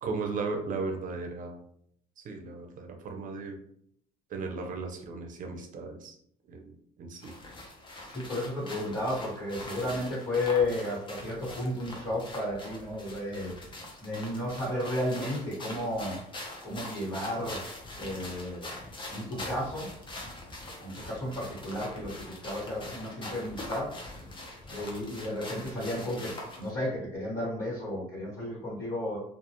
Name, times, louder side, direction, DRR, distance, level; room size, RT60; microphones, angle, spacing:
voice 1, 0.0-1.6 2.2-3.6 4.3-6.2 6.5-7.3, right 4 dB, 50° right, 3 dB, 0.6 m, -36 dB
sound 1, 7.2-26.7, left 1 dB, 30° left, 0.7 m, -43 dB
voice 2, 8.1-13.5 14.0-16.2 16.6-17.6 17.9-18.6 19.1-19.9 20.8-24.0 24.7-29.2, left 1 dB, 50° left, -9 dB, 1.5 m, -33 dB
2.4 x 2.3 x 2.8 m, 0.69 s
cardioid pair, 110°, 17 cm